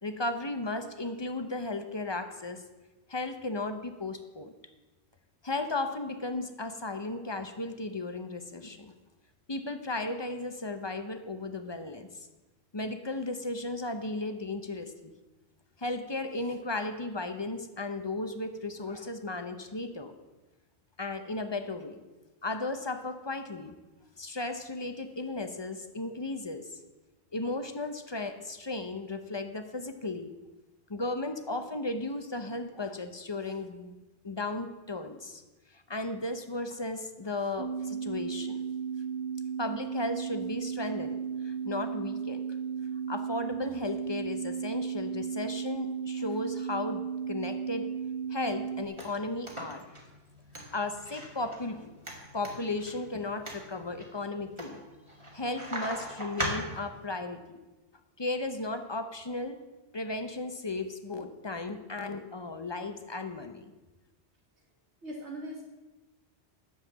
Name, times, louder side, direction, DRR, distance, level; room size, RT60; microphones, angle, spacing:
voice 1, 0.0-2.6 3.1-4.5 5.4-8.9 9.5-12.3 12.7-15.1 15.8-20.1 21.0-22.0 22.4-23.8 24.2-26.7 27.3-30.3 30.9-35.4 35.7-38.6 39.6-42.4 43.1-47.9 48.3-49.9 50.7-51.9 52.3-54.8 55.3-57.6 58.2-59.6 59.9-63.7, left 2 dB, 25° left, 8 dB, 0.8 m, -35 dB
sound 1, 37.6-48.9, right 7 dB, 55° right, 0.6 m, -35 dB
sound 2, 48.4-57.1, right 1 dB, 25° right, 2.2 m, -41 dB
voice 2, 65.0-65.6, equal, 75° right, 0 dB, 1.9 m, -40 dB
10.5 x 7.3 x 7.4 m, 1.1 s
omnidirectional pair, 1.2 m